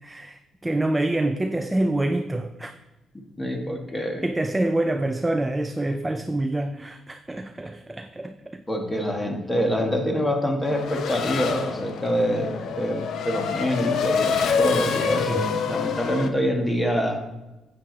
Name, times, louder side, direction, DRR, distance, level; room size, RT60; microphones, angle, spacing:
voice 1, 0.0-2.7 4.2-8.6 15.1-15.5, right 1 dB, 15° right, 0.5 m, -26 dB
voice 2, 3.4-4.3 8.7-17.2, equal, 15° left, 1.7 m, -25 dB
Race car auto racing / Accelerating revving vroom, 10.6-16.3, left 6 dB, 70° left, 0.8 m, -27 dB
9.5 x 8.0 x 4.0 m
cardioid pair, 90°, 0 cm